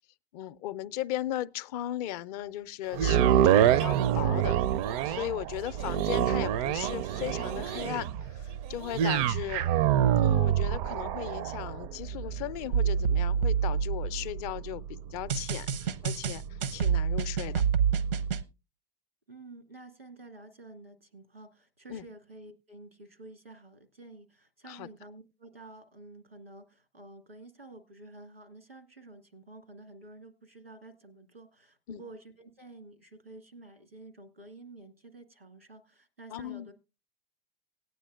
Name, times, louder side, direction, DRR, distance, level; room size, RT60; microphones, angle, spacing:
voice 1, 0.3-4.6 5.0-9.7 10.2-17.6 21.9-22.0 24.7-24.9 31.9-32.0 36.3-36.7, left 13 dB, 45° left, 0.5 m, -37 dB
sound 1, 2.9-17.1 17.7-17.8, right 10 dB, 40° right, 0.5 m, -27 dB
sound 2, 12.7-14.6 15.3-18.4, right 7 dB, 70° right, 0.8 m, -28 dB
voice 2, 19.3-36.7, right 2 dB, 90° right, 2.1 m, -50 dB
18.5 x 9.1 x 2.4 m
figure-of-eight pair, 85°, 29 cm